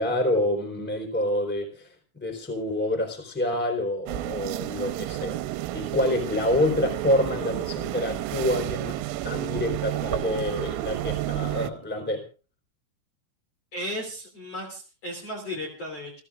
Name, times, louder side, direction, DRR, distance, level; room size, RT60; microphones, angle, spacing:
voice 1, 0.0-1.9 2.2-9.0 9.2-12.2, left 1 dB, ahead, 5 dB, 3.2 m, -27 dB
Ambience - Church Open for Tourism, 4.1-11.7, right 15 dB, 85° right, 3.5 m, -31 dB
voice 2, 13.7-16.1, left 1 dB, 35° left, -2 dB, 3.4 m, -35 dB
29.5 x 14.5 x 2.5 m, 0.35 s
omnidirectional pair, 5.9 m